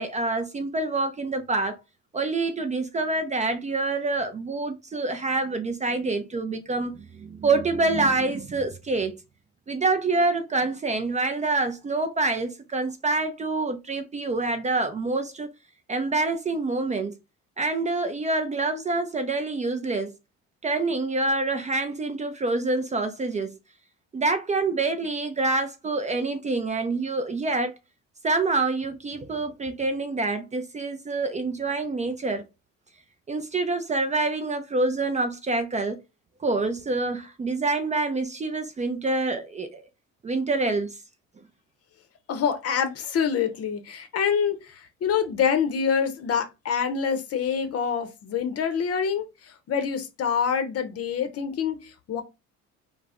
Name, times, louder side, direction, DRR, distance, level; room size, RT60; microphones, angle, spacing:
voice 1, 0.0-1.8 2.1-9.2 9.7-15.5 15.9-17.2 17.6-20.1 20.6-23.6 24.1-27.7 28.2-32.4 33.3-36.0 36.4-39.8 40.2-40.9, right 3 dB, 25° right, 0.4 m, -26 dB
voice 2, 42.3-52.2, left 7 dB, 50° left, 0.7 m, -26 dB
2.3 x 2.0 x 3.4 m
supercardioid pair, 80°, 31 cm